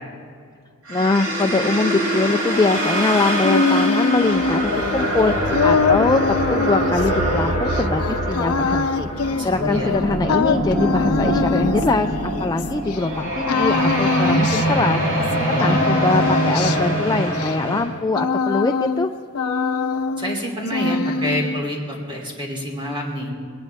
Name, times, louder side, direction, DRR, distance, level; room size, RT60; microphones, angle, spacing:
voice 1, 0.9-19.1, left 3 dB, 15° left, 6 dB, 0.3 m, -23 dB
sound 1, 0.9-17.8, right 1 dB, 70° right, 4.7 m, -23 dB
sound 2, 3.2-13.0 13.5-15.3 15.6-19.1 19.3-20.4 20.7-21.6, left 4 dB, 75° left, 0.6 m, -24 dB
voice 2, 9.4-9.9 15.3-15.9 20.2-23.3, equal, 25° right, -1 dB, 3.1 m, -27 dB
20.5 x 19.0 x 3.5 m, 2.3 s
head